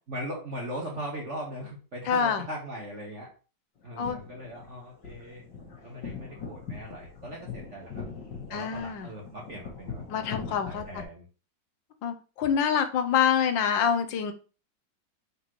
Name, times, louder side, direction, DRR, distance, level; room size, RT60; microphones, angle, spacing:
voice 1, 0.1-3.3 3.8-5.5 5.8-8.0 8.5-11.2, equal, 40° right, -2 dB, 1.8 m, -39 dB
voice 2, 2.1-2.4 4.0-4.2 8.5-9.1 10.1-11.0 12.0-14.3, left 7 dB, 90° left, 9 dB, 1.6 m, -26 dB
sound 1, 3.8-11.0, left 5 dB, 70° left, 2.0 m, -41 dB
9.1 x 4.3 x 3.1 m, 0.35 s
omnidirectional pair, 2.0 m